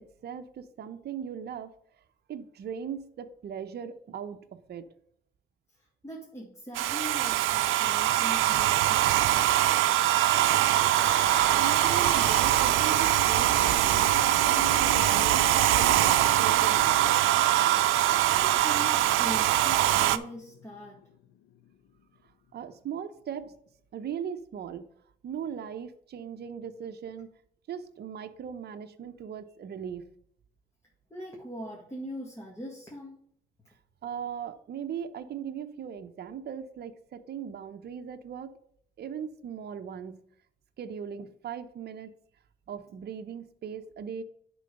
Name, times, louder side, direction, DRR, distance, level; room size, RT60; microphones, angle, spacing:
voice 1, 0.0-1.7 2.3-4.9 11.6-17.0 22.5-23.6 23.9-24.9 25.2-27.3 27.7-30.1 34.0-38.6 39.0-40.2 40.8-42.1 42.7-44.2, right 8 dB, 55° right, 8 dB, 0.8 m, -39 dB
voice 2, 6.0-9.5 18.3-21.0 31.1-33.1, equal, 15° left, -3 dB, 2.0 m, -41 dB
Domestic sounds home sounds, 6.7-20.2, right 14 dB, 85° right, 0.5 m, -23 dB
sound 1, 10.7-21.7, left 10 dB, 75° left, 0.5 m, -42 dB
10.5 x 3.9 x 5.3 m, 0.66 s
cardioid pair, 90°, 20 cm